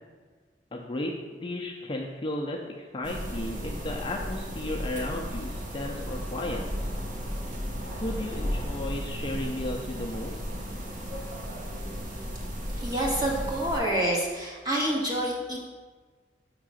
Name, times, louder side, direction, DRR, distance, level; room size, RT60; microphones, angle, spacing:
voice 1, 0.7-6.6 8.0-10.4, left 1 dB, 30° left, 0 dB, 0.6 m, -34 dB
sound 1, 3.0-13.8, equal, 50° right, 1.0 m, -34 dB
voice 2, 12.8-15.6, right 1 dB, 25° right, -4 dB, 1.7 m, -27 dB
6.7 x 3.7 x 6.3 m, 1.4 s
head